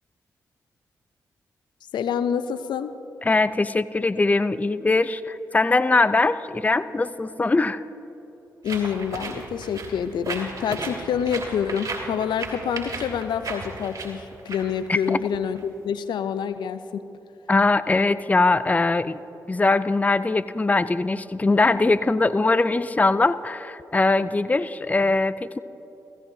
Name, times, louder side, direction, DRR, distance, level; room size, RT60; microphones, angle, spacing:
voice 1, 1.9-2.9 8.6-17.0, left 7 dB, 75° left, 12 dB, 0.5 m, -27 dB
voice 2, 3.2-7.8 14.9-15.2 17.5-19.2 19.5-25.6, left 3 dB, 20° left, 15 dB, 0.4 m, -21 dB
sound 1, 8.6-15.6, right 3 dB, 50° right, 2.8 m, -35 dB
16.0 x 16.0 x 2.7 m, 3.0 s
supercardioid pair, 45°, 8 cm